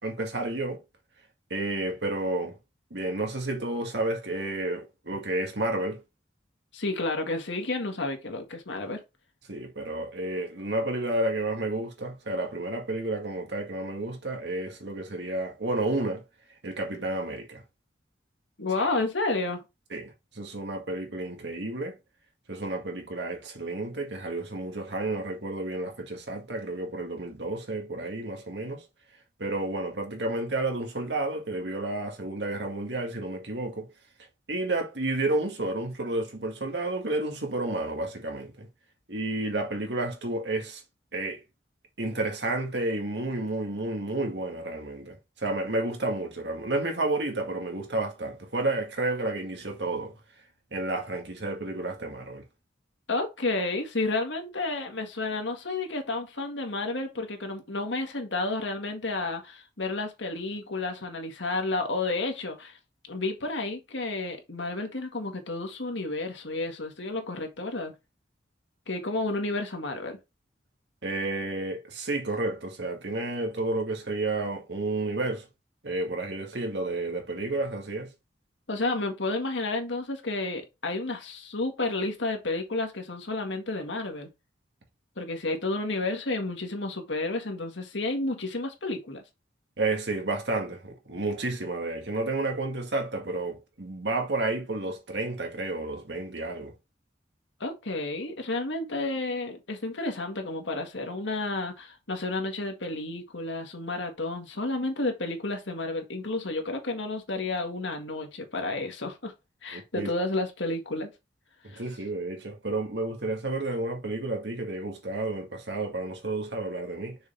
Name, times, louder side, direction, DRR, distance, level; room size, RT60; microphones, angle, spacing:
voice 1, 0.0-0.8 1.5-2.6 2.9-6.0 9.5-16.2 16.6-17.6 19.9-20.0 20.3-22.0 22.5-28.8 29.4-33.8 34.5-38.7 39.1-40.8 41.1-41.4 42.0-50.1 50.7-52.4 71.0-75.5 75.8-78.1 89.8-96.7 109.7-110.1 111.6-117.2, right 2 dB, 70° right, 2.0 m, -31 dB
voice 2, 6.7-9.0 18.6-19.6 53.1-62.8 63.1-67.9 68.9-70.2 78.7-84.3 85.2-89.2 97.6-109.3 109.6-111.1 111.7-111.8, left 2 dB, 85° left, 1.8 m, -31 dB
6.5 x 4.7 x 3.4 m
head